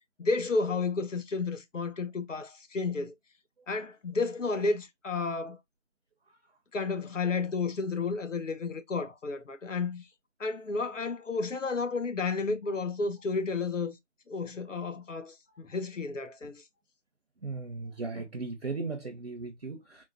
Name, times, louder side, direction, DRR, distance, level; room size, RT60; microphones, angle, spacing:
voice 1, 0.2-3.1 3.7-5.6 6.7-10.1 10.4-14.0 14.3-16.6, left 4 dB, 85° left, 0.8 m, -32 dB
voice 2, 17.4-20.1, right 3 dB, 55° right, 0.5 m, -37 dB
3.7 x 2.0 x 2.5 m
figure-of-eight pair, 175°, 37 cm